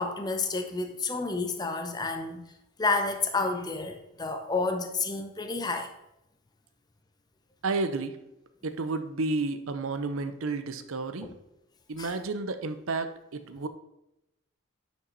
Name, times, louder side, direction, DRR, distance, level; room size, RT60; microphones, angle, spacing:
voice 1, 0.0-2.4 2.8-5.9 11.2-11.3 12.0-12.1, left 3 dB, 20° left, 6 dB, 0.7 m, -30 dB
voice 2, 7.6-8.2 8.6-11.3 11.9-13.7, right 3 dB, 80° right, 10 dB, 0.7 m, -31 dB
9.1 x 5.3 x 4.0 m, 0.88 s
head